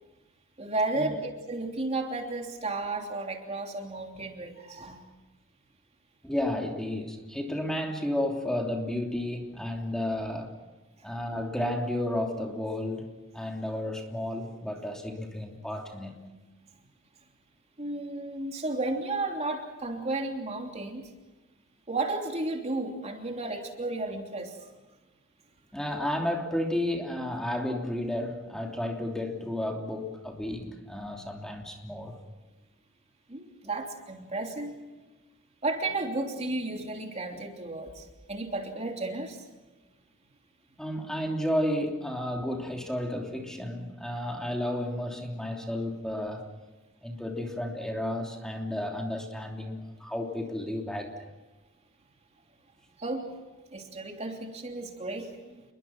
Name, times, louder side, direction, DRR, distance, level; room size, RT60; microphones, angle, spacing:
voice 1, 0.6-5.0 17.8-21.0 21.9-24.7 33.3-34.7 35.6-39.5 53.0-53.3 53.7-55.6, right 2 dB, 30° right, 3 dB, 3.1 m, -33 dB
voice 2, 6.2-10.5 11.0-16.3 25.7-32.2 40.8-46.5 47.0-51.1, left 1 dB, 5° left, 1 dB, 3.1 m, -32 dB
29.5 x 22.5 x 6.1 m, 1.2 s
head